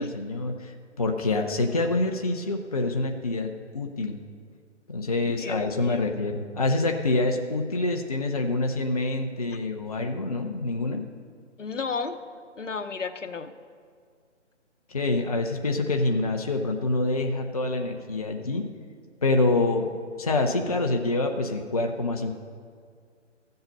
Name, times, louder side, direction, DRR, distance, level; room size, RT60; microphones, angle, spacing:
voice 1, 0.0-4.2 4.9-11.0 14.9-18.7 19.2-19.9 20.2-22.3, left 2 dB, 30° left, 4 dB, 0.5 m, -26 dB
voice 2, 5.3-6.1 11.6-12.2 12.5-13.5, left 4 dB, 80° left, 10 dB, 0.9 m, -33 dB
14.0 x 7.9 x 5.4 m, 2.1 s
figure-of-eight pair, 150°, 37 cm